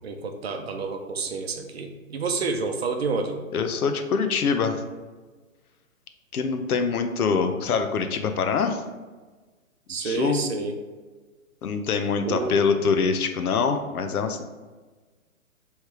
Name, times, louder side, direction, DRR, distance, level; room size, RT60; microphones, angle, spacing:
voice 1, 0.0-3.4 9.9-10.7 12.2-12.5, right 4 dB, 45° right, 5 dB, 0.6 m, -29 dB
voice 2, 3.5-4.8 6.3-8.8 10.0-10.4 11.6-14.4, left 5 dB, 90° left, 7 dB, 0.7 m, -24 dB
3.2 x 3.2 x 4.8 m, 1.3 s
hypercardioid pair, 155°, 43 cm